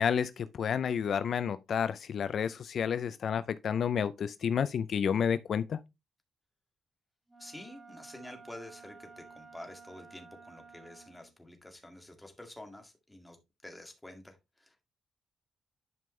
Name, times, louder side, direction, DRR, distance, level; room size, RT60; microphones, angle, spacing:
voice 1, 0.0-5.8, left 7 dB, 60° left, 0.5 m, -30 dB
Wind instrument woodwind instrument, 7.3-11.3, right 4 dB, 10° right, 2.8 m, -53 dB
voice 2, 7.4-13.4 13.6-14.8, left 1 dB, 10° left, 2.0 m, -49 dB
11.0 x 5.3 x 3.2 m
cardioid pair, 115°, 0 cm